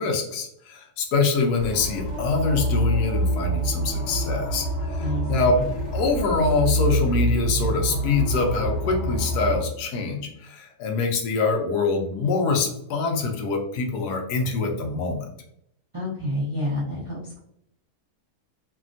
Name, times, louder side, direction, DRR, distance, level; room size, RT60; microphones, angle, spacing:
voice 1, 0.0-5.6 5.9-15.3, left 4 dB, 85° left, 2 dB, 1.2 m, -24 dB
sound 1, 1.6-9.6, equal, 40° left, 1.4 m, -26 dB
voice 2, 5.0-5.7 15.9-17.4, equal, 50° right, -7 dB, 0.3 m, -29 dB
3.3 x 2.2 x 2.5 m, 0.74 s
omnidirectional pair, 1.7 m